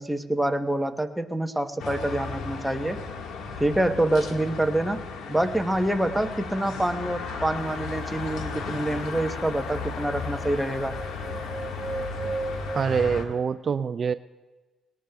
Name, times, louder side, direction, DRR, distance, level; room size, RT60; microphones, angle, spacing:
voice 1, 0.0-3.0 3.6-5.0 5.3-11.0, right 1 dB, 5° right, 6 dB, 0.9 m, -26 dB
sound 1, 1.8-13.2, left 4 dB, 85° left, 1.6 m, -35 dB
sound 2, 8.8-8.9 9.1-12.8, right 2 dB, 20° right, 1.6 m, -36 dB
voice 2, 12.7-14.1, right 6 dB, 50° right, 12 dB, 0.3 m, -25 dB
20.0 x 18.0 x 2.3 m, 1.2 s
cardioid pair, 75°, 0 cm